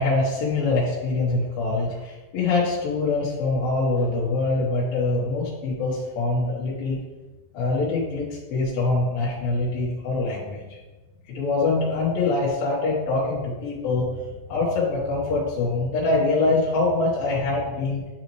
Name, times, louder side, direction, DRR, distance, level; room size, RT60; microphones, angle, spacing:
voice 1, 0.0-7.0 7.5-10.8 11.3-14.1 14.5-18.1, left 3 dB, 80° left, -7 dB, 3.0 m, -24 dB
11.0 x 4.0 x 3.1 m, 1.2 s
omnidirectional pair, 4.1 m